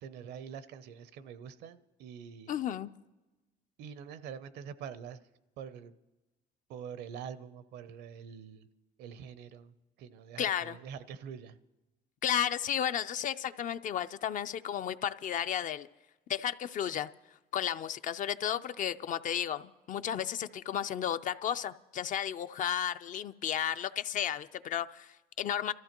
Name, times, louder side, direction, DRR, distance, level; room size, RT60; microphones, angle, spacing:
voice 1, 0.0-2.6 3.8-5.2 5.6-5.9 6.7-8.7 9.0-11.6, right 7 dB, 80° right, 14 dB, 0.7 m, -45 dB
voice 2, 2.5-2.9 10.4-10.8 12.2-15.9 16.3-17.1 17.5-19.6 19.9-25.7, left 9 dB, 50° left, 12 dB, 0.4 m, -33 dB
24.0 x 14.0 x 3.0 m, 1.1 s
cardioid pair, 110°, 17 cm